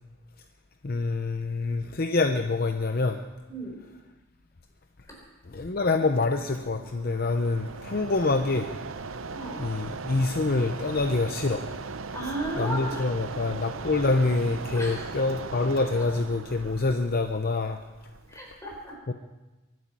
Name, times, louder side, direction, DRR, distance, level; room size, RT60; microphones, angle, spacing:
voice 1, 0.8-3.2 5.5-8.7 9.6-11.6 12.6-17.8 19.1-19.2, left 3 dB, 45° left, 6 dB, 0.7 m, -26 dB
voice 2, 3.5-3.8 5.1-5.2 9.3-9.7 12.1-13.1 14.7-15.1 15.7-16.0 18.3-19.0, right 1 dB, 15° left, -1 dB, 4.3 m, -35 dB
Mechanisms, 6.1-18.5, right 4 dB, 80° right, 0.7 m, -39 dB
23.0 x 9.4 x 6.2 m, 1.1 s
head